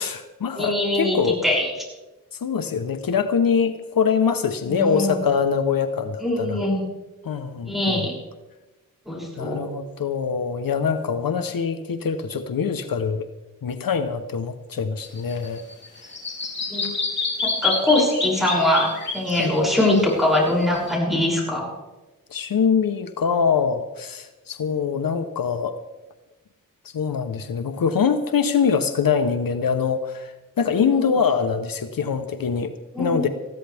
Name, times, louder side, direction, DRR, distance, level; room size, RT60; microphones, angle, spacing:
voice 1, 0.0-1.4 2.3-6.6 7.2-8.0 9.4-13.3 13.6-15.6 19.3-19.5 22.3-25.7 26.8-33.3, left 6 dB, 75° left, 8 dB, 1.0 m, -24 dB
voice 2, 0.5-1.7 4.7-5.2 6.2-6.8 7.7-8.1 9.0-9.6 16.7-16.9 17.4-21.7 30.8-31.1 32.9-33.2, left 1 dB, ahead, -4 dB, 6.8 m, -22 dB
Bird vocalization bird call bird song, 15.0-20.9, left 4 dB, 30° left, 3.2 m, -28 dB
20.0 x 14.5 x 3.5 m, 1.1 s
wide cardioid pair, 90°, 35 cm